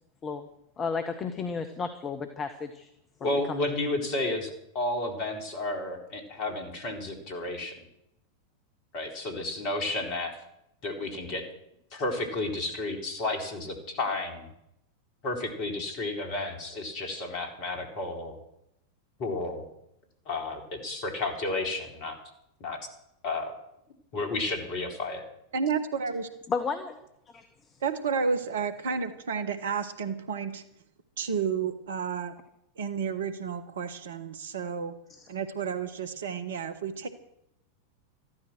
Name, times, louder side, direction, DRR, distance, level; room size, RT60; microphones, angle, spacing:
voice 1, 0.8-2.9 3.2-3.7 26.5-27.0 27.3-27.5 35.1-35.3, left 5 dB, 25° left, 8 dB, 1.3 m, -33 dB
voice 2, 3.2-7.8 8.9-10.4 10.8-11.4 11.9-14.5 15.2-18.4 19.2-19.6 20.3-22.2 22.6-22.8 23.2-23.5 24.1-25.2, left 2 dB, 45° left, 3 dB, 4.0 m, -32 dB
voice 3, 25.5-26.3 27.8-30.6 31.2-32.3 32.8-34.9 35.3-37.1, right 6 dB, 60° right, 11 dB, 1.3 m, -31 dB
14.5 x 12.5 x 6.3 m, 0.79 s
figure-of-eight pair, 90°, 0 cm